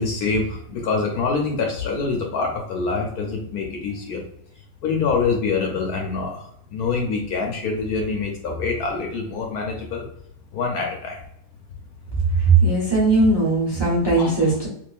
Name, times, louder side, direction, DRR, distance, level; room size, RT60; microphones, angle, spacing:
voice 1, 0.0-4.2 4.8-6.4 6.7-10.0 10.5-11.2 14.2-14.3, left 4 dB, 70° left, 1 dB, 1.1 m, -25 dB
voice 2, 12.4-14.7, right 3 dB, 20° right, -5 dB, 0.9 m, -18 dB
3.6 x 2.9 x 2.4 m, 0.71 s
omnidirectional pair, 1.9 m